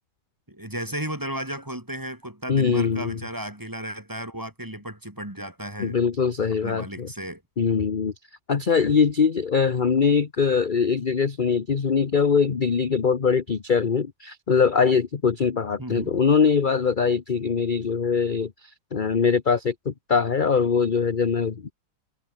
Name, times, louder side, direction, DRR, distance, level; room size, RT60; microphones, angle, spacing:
voice 1, 0.5-6.0 6.5-7.4 15.8-16.1, right 1 dB, 10° right, 2.7 m, -34 dB
voice 2, 2.5-3.2 5.8-7.1 7.6-8.1 8.5-21.7, left 6 dB, 35° left, 1.0 m, -22 dB
omnidirectional pair, 1.8 m